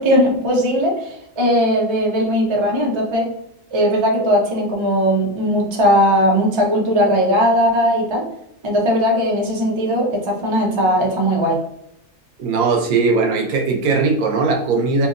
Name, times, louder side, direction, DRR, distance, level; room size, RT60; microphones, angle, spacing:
voice 1, 0.0-3.3 3.7-8.3 8.6-11.6, equal, 45° right, -1 dB, 0.4 m, -18 dB
voice 2, 12.4-15.1, right 4 dB, 75° right, 2 dB, 1.1 m, -18 dB
2.8 x 2.7 x 2.5 m, 0.75 s
omnidirectional pair, 1.6 m